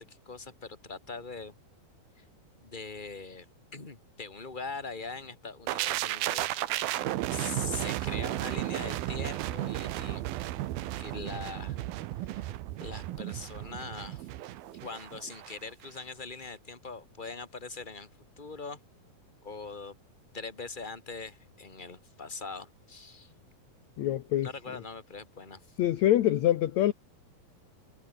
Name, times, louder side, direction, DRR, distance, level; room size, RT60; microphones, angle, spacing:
voice 1, 0.0-1.5 2.2-2.3 2.6-6.5 7.3-10.3 10.9-11.8 12.2-12.5 12.8-14.3 14.8-18.1 18.4-18.8 19.4-19.9 20.3-23.3 24.4-25.8, left 4 dB, 15° left, 3.0 m, -42 dB
sound 1, 5.7-15.6 15.8-16.0, right 15 dB, 85° right, 3.0 m, -34 dB
voice 2, 24.0-24.5 25.8-26.9, left 13 dB, 65° left, 2.0 m, -25 dB
omnidirectional pair, 4.2 m